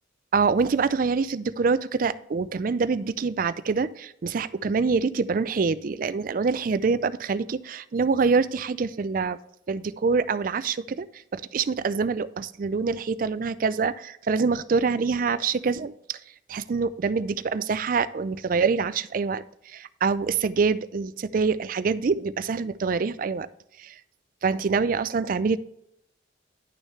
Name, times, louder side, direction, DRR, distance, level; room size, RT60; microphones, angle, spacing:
voice 1, 0.3-9.4 9.7-11.1 11.3-16.2 16.5-23.5 23.8-23.9 24.4-25.6, right 5 dB, 45° right, 15 dB, 0.4 m, -25 dB
10.5 x 6.4 x 3.2 m, 0.78 s
head